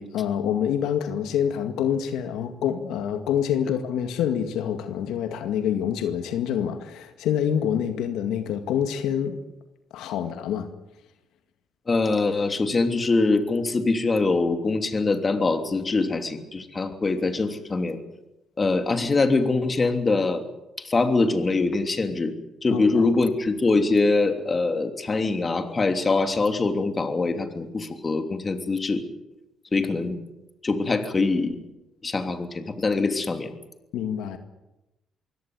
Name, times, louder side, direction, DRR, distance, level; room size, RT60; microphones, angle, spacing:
voice 1, 0.0-9.4 9.9-10.7 22.7-22.8 33.9-34.4, left 9 dB, 90° left, 7 dB, 2.0 m, -26 dB
voice 2, 11.9-18.0 18.6-20.4 20.8-22.3 22.6-29.0 29.7-30.2 30.6-31.6 32.0-33.5, left 3 dB, 30° left, 6 dB, 3.1 m, -23 dB
23.5 x 17.0 x 9.5 m, 0.96 s
cardioid pair, 90°, 0 cm